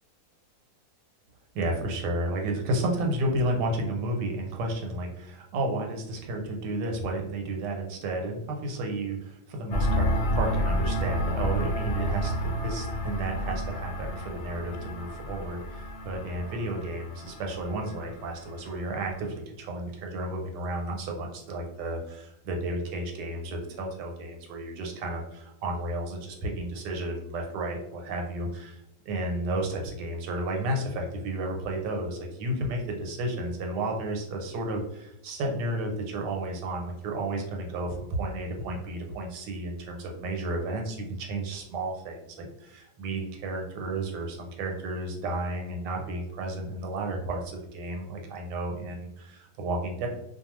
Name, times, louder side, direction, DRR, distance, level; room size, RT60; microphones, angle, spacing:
voice 1, 1.5-50.1, right 1 dB, 90° right, 2 dB, 1.3 m, -32 dB
sound 1, 9.7-19.2, equal, 90° left, 0.6 m, -30 dB
2.5 x 2.3 x 2.9 m, 0.82 s
omnidirectional pair, 1.8 m